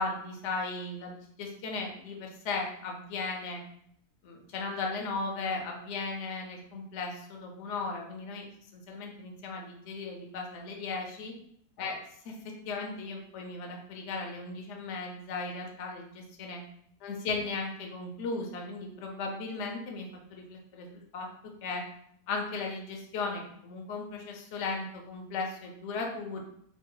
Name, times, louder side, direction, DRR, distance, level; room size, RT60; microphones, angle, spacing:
voice 1, 0.0-3.6 4.2-8.4 8.7-11.3 11.8-11.9 12.2-16.6 17.0-21.8 22.3-26.4, left 3 dB, 60° left, 1 dB, 0.8 m, -36 dB
3.0 x 2.2 x 3.7 m, 0.67 s
omnidirectional pair, 1.7 m